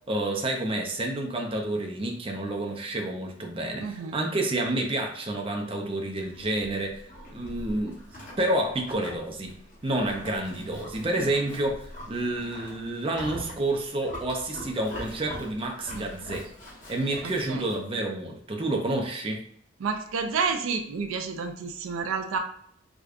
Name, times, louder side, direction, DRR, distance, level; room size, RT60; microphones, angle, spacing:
voice 1, 0.1-8.0 8.4-9.6 9.8-16.4 16.9-19.4, right 1 dB, 25° right, 1 dB, 0.5 m, -29 dB
voice 2, 3.8-4.2 15.9-16.2 17.5-17.6 19.8-22.4, right 5 dB, 90° right, 6 dB, 0.4 m, -30 dB
Livestock farm animals working animals, 6.2-17.8, equal, 40° left, 1.1 m, -43 dB
4.9 x 2.2 x 2.4 m, 0.66 s
head